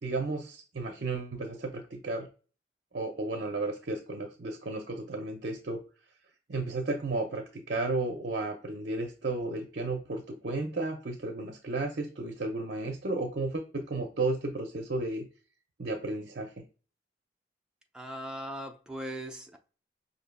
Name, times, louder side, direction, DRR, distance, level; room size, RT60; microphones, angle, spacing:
voice 1, 0.0-2.3 2.9-5.8 6.5-15.3 15.8-16.7, right 2 dB, 55° right, 0.6 m, -33 dB
voice 2, 17.9-19.6, equal, 5° right, 0.5 m, -39 dB
5.4 x 2.7 x 2.2 m
head